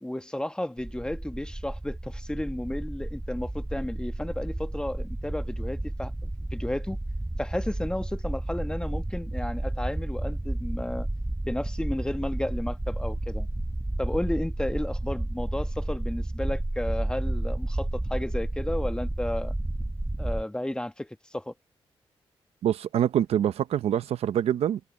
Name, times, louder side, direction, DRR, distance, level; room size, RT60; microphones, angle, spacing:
voice 1, 0.0-7.0 7.4-11.1 11.4-13.5 14.0-19.5 20.2-21.5, left 1 dB, 10° left, 1.6 m, -33 dB
sound 1, 0.8-20.4, right 1 dB, 10° right, 0.9 m, -31 dB
voice 2, 22.6-24.8, right 10 dB, 85° right, 0.8 m, -25 dB
cardioid pair, 65°, 10 cm